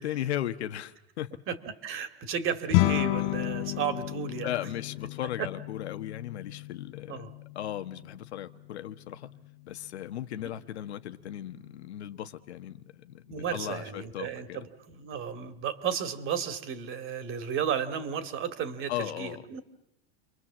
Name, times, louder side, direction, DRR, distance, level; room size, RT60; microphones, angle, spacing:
voice 1, 0.0-1.4 4.4-7.3 7.5-9.3 9.7-14.6 18.9-19.4, left 12 dB, 90° left, 1.4 m, -36 dB
voice 2, 1.5-4.5 5.4-5.5 7.1-7.3 13.3-19.6, right 8 dB, 40° right, 2.4 m, -33 dB
sound 1, 2.7-12.2, left 18 dB, 55° left, 1.0 m, -33 dB
29.5 x 22.5 x 7.4 m
supercardioid pair, 130°, 32 cm